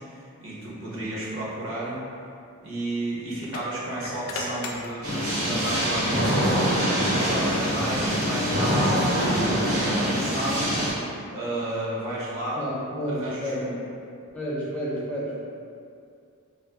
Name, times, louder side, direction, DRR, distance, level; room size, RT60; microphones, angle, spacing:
voice 1, 0.0-2.0 2.6-12.6 13.1-13.8, right 1 dB, 65° right, -6 dB, 0.7 m, -32 dB
sound 1, 3.4-5.6 6.0-9.3, left 2 dB, 90° left, 0.4 m, -39 dB
sound 2, 5.0-10.9, equal, 80° right, 1.2 m, -24 dB
voice 2, 12.6-13.7 14.3-15.5, equal, 5° left, -8 dB, 0.4 m, -30 dB
2.4 x 2.3 x 3.5 m, 2.4 s
head